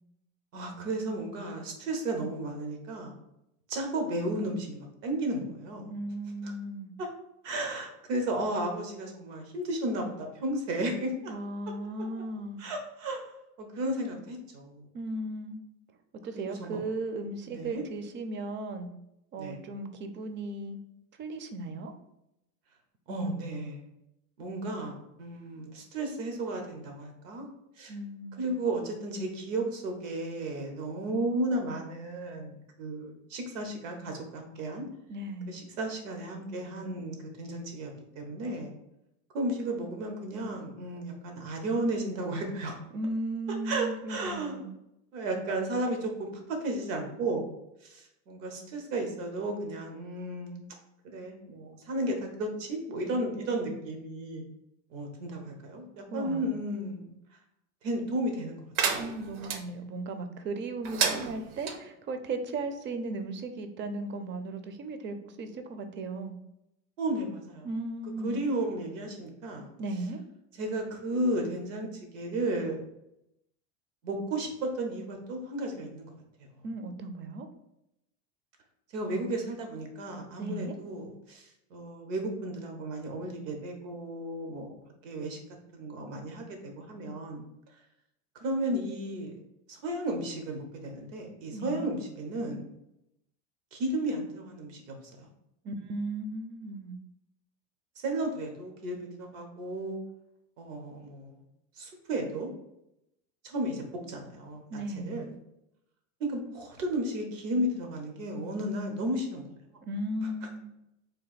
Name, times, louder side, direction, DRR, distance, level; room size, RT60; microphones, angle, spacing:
voice 1, 0.5-3.1 3.7-5.9 7.0-7.1 7.4-11.3 12.6-13.3 13.6-14.9 16.3-16.8 17.5-17.8 19.4-19.6 23.1-23.9 24.4-27.5 27.8-27.9 28.4-34.9 35.5-38.7 39.3-42.8 43.6-44.7 45.1-47.5 47.8-50.6 51.0-54.5 54.9-57.0 57.8-59.0 67.0-67.7 68.2-69.7 70.6-72.8 74.0-76.2 78.9-84.7 85.0-85.4 85.7-87.4 88.4-89.3 89.7-92.6 93.7-95.3 98.0-100.0 100.6-101.3 101.8-102.5 103.4-105.3 106.2-109.8, right 1 dB, 85° right, 3 dB, 1.1 m, -34 dB
voice 2, 5.9-6.9 11.3-12.6 14.9-15.6 16.2-18.9 19.3-20.8 21.2-21.9 27.9-28.5 35.1-35.5 42.9-44.7 56.1-56.6 59.0-66.4 67.6-68.4 69.8-70.2 76.6-77.5 80.4-80.8 91.5-91.9 95.6-97.0 104.7-105.2 109.8-110.7, right 2 dB, 30° right, 8 dB, 0.5 m, -36 dB
sound 1, 58.7-59.6 60.8-61.8, right 6 dB, 60° right, 0.7 m, -30 dB
3.4 x 2.5 x 4.0 m, 0.84 s
supercardioid pair, 110°, 38 cm